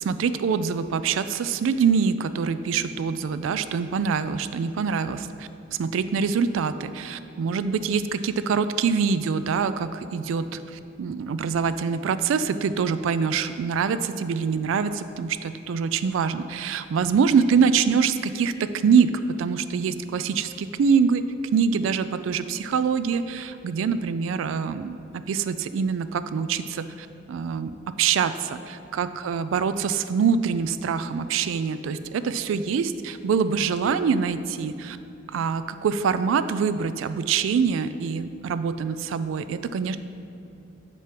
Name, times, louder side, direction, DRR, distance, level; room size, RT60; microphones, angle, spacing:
voice 1, 0.0-5.5 5.8-21.2 21.5-35.0 35.3-40.0, right 6 dB, 75° right, 12 dB, 0.3 m, -25 dB
7.4 x 3.5 x 5.9 m, 2.8 s
head